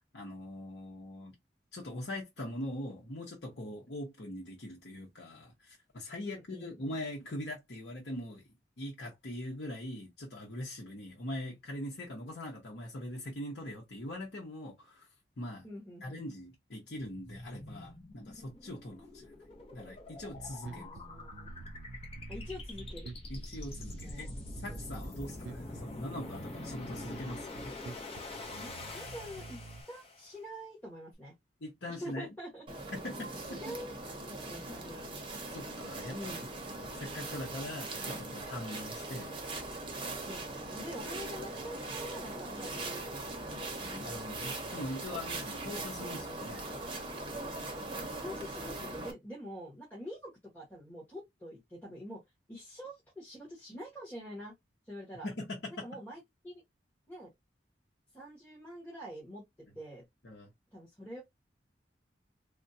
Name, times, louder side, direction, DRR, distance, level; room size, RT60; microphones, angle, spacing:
voice 1, 0.1-1.3 1.7-8.4 8.8-15.1 15.4-15.7 16.0-19.4 19.7-20.9 23.3-24.3 24.5-27.7 31.6-32.3 32.9-33.7 35.5-36.3 36.7-39.4 43.8-46.6 55.2-55.9 60.2-60.5, left 1 dB, 75° left, 0.9 m, -42 dB
voice 2, 6.2-6.9 15.6-16.2 20.6-21.5 22.3-23.1 24.0-24.3 24.7-24.8 25.7-25.9 28.6-29.6 29.9-31.3 31.9-32.7 33.5-33.9 34.5-35.2 36.1-36.4 37.9-38.3 40.2-44.5 45.9-46.5 48.1-52.2 52.5-54.5 54.9-55.3 55.8-56.5 57.1-57.3 58.1-59.4 59.7-60.0 60.7-61.2, equal, 10° left, 1.3 m, -46 dB
sound 1, 17.0-30.4, left 2 dB, 35° left, 0.8 m, -45 dB
Bass guitar, 20.2-29.8, right 3 dB, 80° right, 0.4 m, -49 dB
sound 2, 32.7-49.1, right 2 dB, 30° right, 0.8 m, -40 dB
3.5 x 2.2 x 2.7 m
head